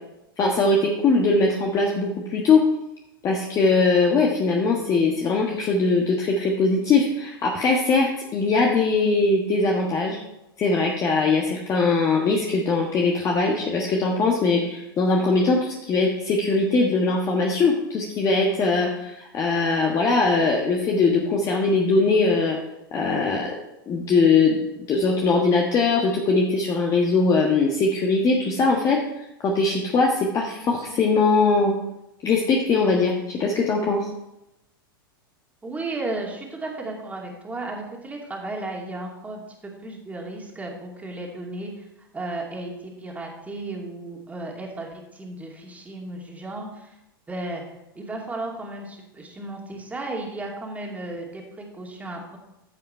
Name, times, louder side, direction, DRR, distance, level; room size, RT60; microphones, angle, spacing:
voice 1, 0.4-2.6 3.2-10.2 10.6-22.6 22.9-23.5 23.9-31.7 32.2-34.1, left 3 dB, 30° left, 0 dB, 1.4 m, -21 dB
voice 2, 35.6-47.0 47.3-47.6 47.9-52.4, right 2 dB, 10° right, 0 dB, 2.4 m, -34 dB
14.5 x 5.6 x 4.5 m, 0.90 s
hypercardioid pair, 100°, 12 cm